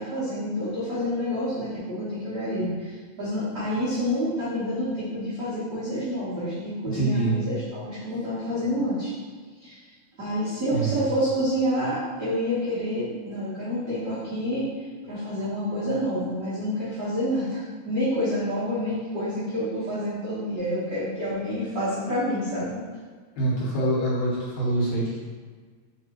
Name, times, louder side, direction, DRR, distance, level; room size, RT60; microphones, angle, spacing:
voice 1, 0.0-9.1 9.6-9.8 10.2-14.6 15.0-22.7, equal, 70° right, -13 dB, 0.8 m, -28 dB
voice 2, 6.9-7.4 10.7-11.0 23.4-25.2, right 2 dB, 75° left, -6 dB, 2.3 m, -25 dB
4.7 x 2.9 x 2.9 m, 1.5 s
omnidirectional pair, 3.4 m